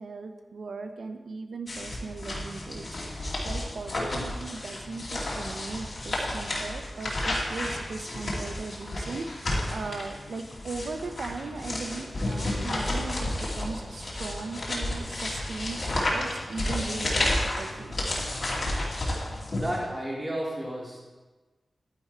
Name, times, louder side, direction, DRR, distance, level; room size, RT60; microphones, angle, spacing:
voice 1, 0.0-17.3 17.5-18.3, right 3 dB, 75° right, 6 dB, 0.8 m, -38 dB
sound 1, 1.7-19.8, left 1 dB, 45° left, 2.6 m, -31 dB
voice 2, 19.5-21.1, right 1 dB, 20° right, -5 dB, 3.4 m, -33 dB
11.0 x 10.0 x 4.4 m, 1.2 s
wide cardioid pair, 125°, 0 cm